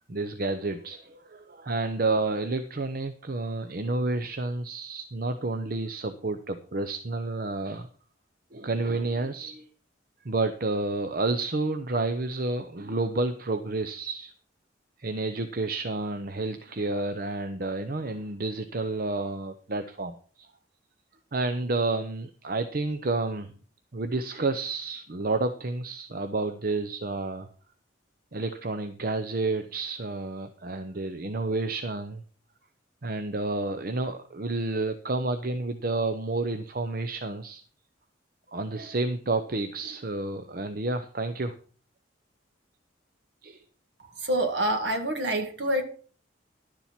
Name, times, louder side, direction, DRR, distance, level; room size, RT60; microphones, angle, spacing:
voice 1, 0.0-7.9 8.5-9.7 10.2-14.3 15.0-20.5 21.3-23.5 23.9-27.5 28.3-32.2 33.0-37.6 38.5-41.5 43.4-43.6, right 2 dB, 50° right, 0.7 m, -30 dB
voice 2, 44.2-45.8, right 1 dB, 65° right, 2.1 m, -26 dB
11.5 x 7.2 x 5.9 m
head